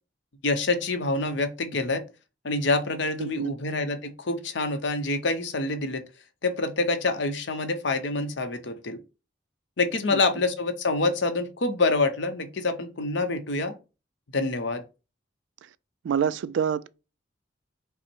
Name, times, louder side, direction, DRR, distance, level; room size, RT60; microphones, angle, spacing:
voice 1, 0.4-2.0 2.4-6.0 6.4-9.0 9.8-13.8 14.3-14.8, left 3 dB, 75° left, 0.7 m, -26 dB
voice 2, 3.2-3.5 10.1-10.2 16.0-16.9, right 8 dB, 80° right, 0.3 m, -26 dB
5.6 x 2.0 x 4.4 m
head